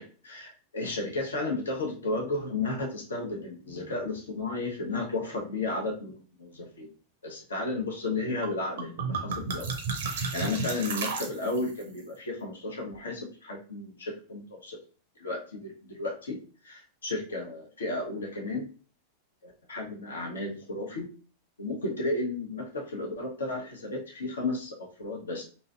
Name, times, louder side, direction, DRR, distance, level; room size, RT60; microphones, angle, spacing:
voice 1, 0.0-6.9 7.2-9.7 10.3-14.8 15.2-16.4 16.6-18.7 19.4-21.1 21.6-25.4, left 2 dB, 70° left, 0 dB, 0.9 m, -33 dB
sound 1, 8.4-8.5 8.8-11.8, right 4 dB, 60° right, 0.6 m, -33 dB
3.0 x 2.6 x 2.4 m, 0.38 s
figure-of-eight pair, 90°, 0 cm